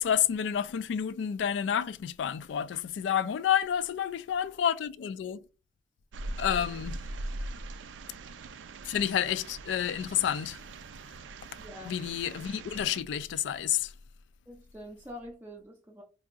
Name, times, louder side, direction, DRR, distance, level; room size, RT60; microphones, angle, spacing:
voice 1, 0.0-5.4 6.4-7.0 8.8-10.6 11.9-13.9, left 9 dB, 80° left, 0.3 m, -29 dB
sound 1, 6.1-13.0, right 2 dB, 85° right, 0.4 m, -41 dB
voice 2, 11.6-12.0 14.5-16.0, equal, 10° right, 0.5 m, -45 dB
4.6 x 2.6 x 2.4 m
head